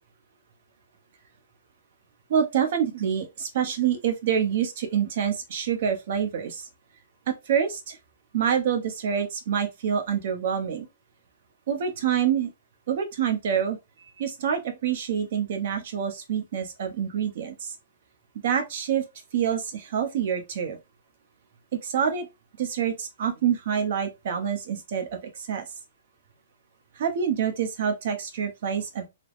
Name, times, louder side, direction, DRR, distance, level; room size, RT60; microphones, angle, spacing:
voice 1, 2.3-6.7 7.3-8.0 8.3-10.9 11.7-12.5 12.9-13.8 14.2-17.7 18.4-19.0 19.3-20.8 21.8-22.3 22.6-25.6 27.0-29.1, right 8 dB, 60° right, 0.7 m, -26 dB
3.2 x 2.0 x 2.4 m
hypercardioid pair, 140°, 0 cm